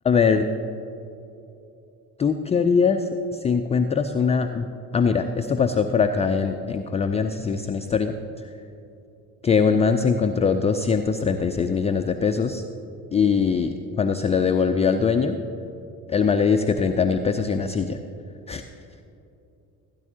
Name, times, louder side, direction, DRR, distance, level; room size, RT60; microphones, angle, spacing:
voice 1, 0.0-0.5 2.2-4.7 4.9-8.1 9.4-12.6 13.1-15.4 16.1-18.0 18.5-18.6, left 5 dB, 15° left, 7 dB, 0.3 m, -22 dB
16.0 x 9.6 x 2.8 m, 2.9 s
hypercardioid pair, 50°, 45 cm